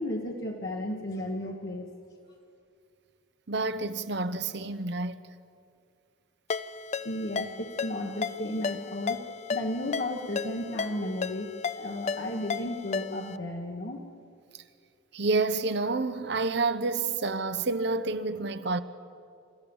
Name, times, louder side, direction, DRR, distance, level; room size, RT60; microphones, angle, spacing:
voice 1, 0.0-1.9 7.0-14.0, left 1 dB, 50° left, 1.3 m, -34 dB
voice 2, 3.5-5.2 15.1-18.8, right 3 dB, 55° right, 0.8 m, -29 dB
Ringtone, 6.5-13.4, left 5 dB, 35° left, 0.4 m, -34 dB
28.0 x 14.5 x 7.1 m
head